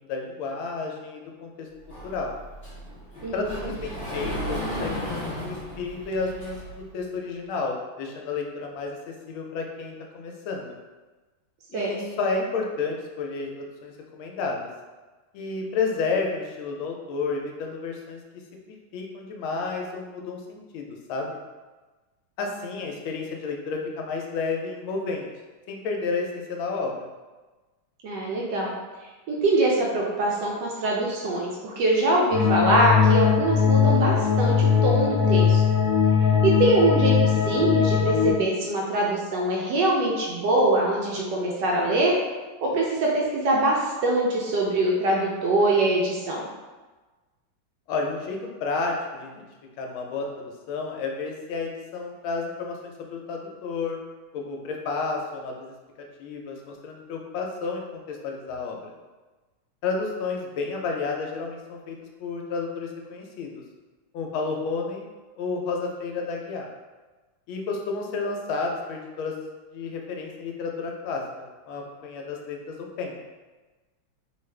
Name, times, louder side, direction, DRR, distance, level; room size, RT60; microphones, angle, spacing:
voice 1, 0.0-1.7 2.0-2.3 3.3-10.7 11.7-14.7 15.3-21.4 22.4-25.3 25.7-26.9 47.9-49.4 49.8-54.0 54.3-55.7 56.2-58.9 59.8-63.6 64.1-65.0 65.4-66.7 67.5-69.3 69.7-73.2, left 4 dB, 80° left, 1 dB, 1.4 m, -31 dB
Sliding door, 1.9-6.9, equal, 35° left, 1.3 m, -34 dB
voice 2, 3.2-3.7 11.7-11.9 28.0-28.7 29.3-35.6 36.4-42.2 42.6-46.5, right 2 dB, 70° right, -3 dB, 1.1 m, -23 dB
sound 1, 32.3-38.3, left 7 dB, 55° left, 1.0 m, -20 dB
3.5 x 2.4 x 3.2 m, 1.2 s
omnidirectional pair, 2.2 m